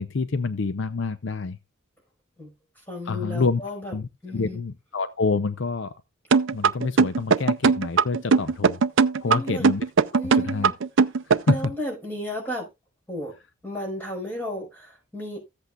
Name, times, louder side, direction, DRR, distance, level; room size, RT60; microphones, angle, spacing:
voice 1, 0.0-1.6 3.1-3.6 3.9-5.9 6.5-8.8 9.2-9.8 10.3-10.7 11.5-11.7, left 4 dB, 60° left, 0.6 m, -27 dB
voice 2, 2.9-4.0 4.2-4.6 9.2-9.7 10.2-10.8 11.5-12.7 13.1-13.3 13.6-15.4, left 1 dB, 10° left, 5.2 m, -33 dB
sound 1, 6.3-11.7, right 5 dB, 65° right, 0.5 m, -19 dB
14.5 x 8.2 x 2.4 m
head